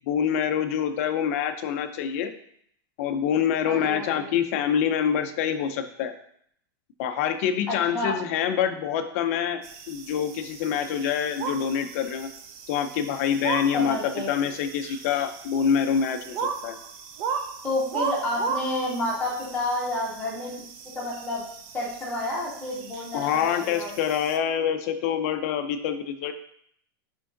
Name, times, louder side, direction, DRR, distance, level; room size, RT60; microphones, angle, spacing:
voice 1, 0.1-2.3 3.0-6.1 7.0-12.3 12.7-16.8 23.1-26.3, left 8 dB, 40° left, 8 dB, 0.5 m, -26 dB
voice 2, 3.6-4.2 7.7-8.1 13.7-14.3 17.6-20.5 20.9-21.4 21.7-24.0, left 1 dB, 10° left, -7 dB, 1.8 m, -29 dB
sound 1, 9.6-24.4, right 6 dB, 25° right, 0.4 m, -37 dB
6.0 x 4.5 x 3.8 m, 0.68 s
supercardioid pair, 180°, 12 cm